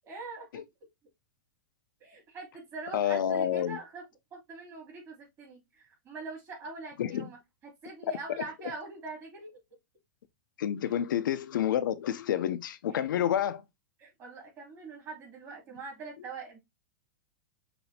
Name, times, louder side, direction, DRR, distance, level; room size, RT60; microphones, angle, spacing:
voice 1, 0.1-0.6 2.0-4.0 4.3-9.6 10.8-11.0 12.9-13.2 14.0-16.6, right 3 dB, 30° right, 2.9 m, -43 dB
voice 2, 2.9-3.8 7.0-7.3 10.6-13.6, left 10 dB, 85° left, 0.6 m, -29 dB
5.9 x 2.7 x 2.7 m
supercardioid pair, 140°, 10 cm